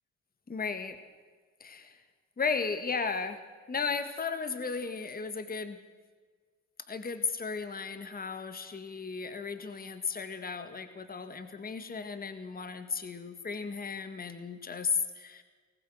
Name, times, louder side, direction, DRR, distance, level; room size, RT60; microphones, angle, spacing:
voice 1, 0.5-1.0 1.6-2.0 2.4-3.4 3.7-5.8 6.9-15.4, left 5 dB, 30° left, 9 dB, 1.7 m, -35 dB
24.5 x 18.5 x 6.4 m, 1.5 s
cardioid pair, 90°, 30 cm